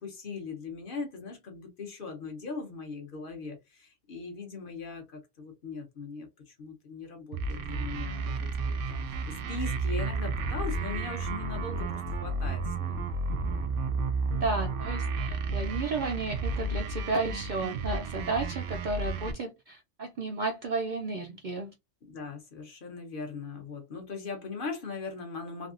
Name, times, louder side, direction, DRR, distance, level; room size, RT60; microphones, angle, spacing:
voice 1, 0.0-13.1 22.0-25.7, left 4 dB, 50° left, 0.9 m, -40 dB
sound 1, 7.3-19.3, right 3 dB, 80° right, 0.9 m, -32 dB
voice 2, 14.3-21.7, right 3 dB, 60° right, 0.5 m, -33 dB
3.4 x 2.3 x 2.4 m
omnidirectional pair, 1.3 m